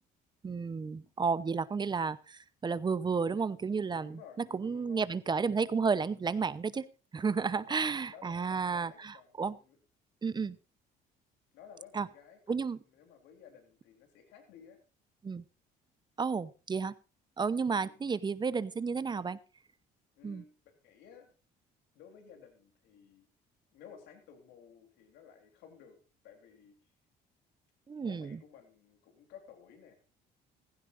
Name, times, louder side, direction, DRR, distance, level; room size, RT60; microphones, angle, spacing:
voice 1, 0.4-4.2 4.5-6.9 7.1-9.6 10.2-10.6 11.9-12.1 12.5-12.8 15.2-15.4 16.2-16.9 17.4-19.4 20.2-20.4 27.9-28.4, right 5 dB, 25° right, 16 dB, 0.8 m, -32 dB
voice 2, 4.0-5.1 7.1-7.8 8.1-9.8 11.5-12.6 12.8-14.8 17.7-18.0 20.2-21.3 21.9-23.3 23.7-26.0 26.2-26.8 27.9-29.9, left 7 dB, 85° left, 5 dB, 3.6 m, -55 dB
16.0 x 15.5 x 2.6 m, 0.33 s
cardioid pair, 110°, 17 cm